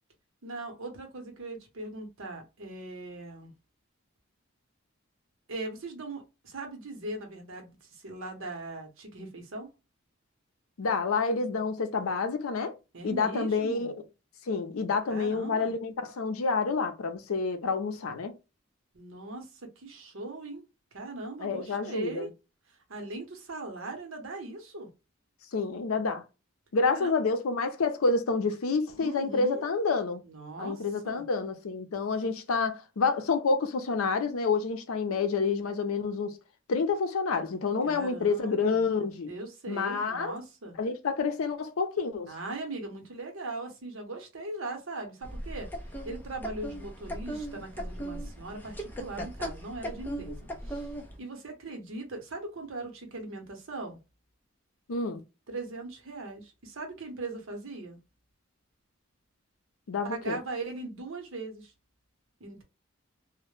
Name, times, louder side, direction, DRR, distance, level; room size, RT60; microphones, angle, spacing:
voice 1, 0.4-3.5 5.5-9.7 12.9-13.9 15.1-15.7 18.9-20.6 20.9-22.3 22.7-24.9 26.9-27.2 29.0-29.7 30.3-31.2 37.8-38.8 39.3-40.8 42.3-45.7 46.0-50.9 51.2-54.0 55.5-58.0 60.0-61.7 62.4-62.6, right 2 dB, 80° right, 0.8 m, -40 dB
voice 2, 10.8-12.7 13.0-13.9 14.5-18.3 21.4-22.3 25.5-26.2 26.7-30.2 30.6-36.4 36.7-39.3 39.7-40.3 40.8-42.3 54.9-55.2 59.9-60.4, left 4 dB, 90° left, 0.5 m, -28 dB
sound 1, 45.2-51.2, equal, 10° left, 0.4 m, -38 dB
2.1 x 2.1 x 3.0 m
head